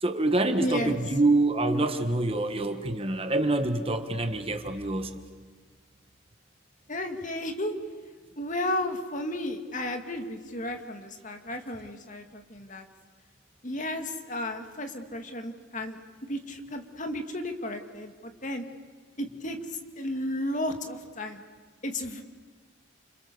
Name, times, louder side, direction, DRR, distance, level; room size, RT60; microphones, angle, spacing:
voice 1, 0.0-5.2, right 2 dB, 30° right, 7 dB, 1.4 m, -26 dB
voice 2, 0.6-1.0 6.9-7.7 8.4-12.8 13.6-16.0 16.3-18.6 19.2-21.4 21.8-22.2, left 1 dB, 40° left, 5 dB, 2.3 m, -33 dB
30.0 x 28.0 x 7.0 m, 1.5 s
head